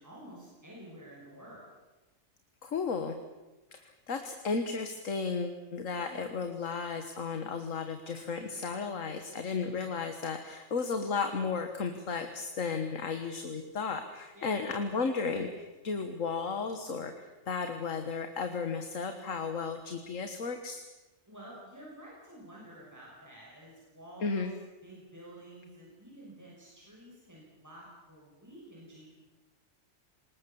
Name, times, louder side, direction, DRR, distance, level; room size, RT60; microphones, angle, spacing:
voice 1, 0.0-1.6 14.3-14.6 21.3-24.5 24.8-29.2, right 1 dB, 15° right, -5 dB, 6.2 m, -50 dB
voice 2, 2.6-3.2 3.7-20.8 24.2-24.5, left 5 dB, 80° left, 7 dB, 1.9 m, -34 dB
27.0 x 19.5 x 7.1 m, 1.1 s
omnidirectional pair, 1.3 m